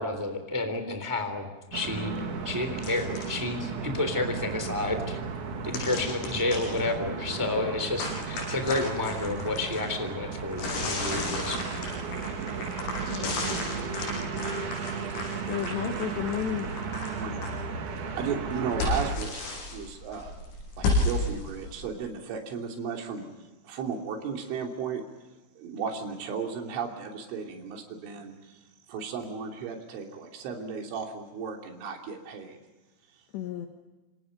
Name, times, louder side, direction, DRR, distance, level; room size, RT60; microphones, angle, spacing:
voice 1, 0.0-2.1 2.4-5.2 5.6-11.6, left 2 dB, 5° right, 6 dB, 2.2 m, -30 dB
sound 1, 1.7-19.2, right 5 dB, 50° right, 2.7 m, -35 dB
sound 2, 2.8-3.4 5.7-6.8 8.0-10.0 10.5-17.5 17.9-21.9, left 2 dB, 85° left, 9.7 m, -33 dB
voice 2, 15.5-16.7 33.3-33.7, left 11 dB, 70° left, 4 dB, 3.4 m, -32 dB
voice 3, 17.1-20.4 20.8-23.3 23.6-25.0 25.6-28.6 28.9-32.6, right 6 dB, 75° right, 2 dB, 5.5 m, -35 dB
27.5 x 26.5 x 5.4 m, 1.2 s
omnidirectional pair, 5.6 m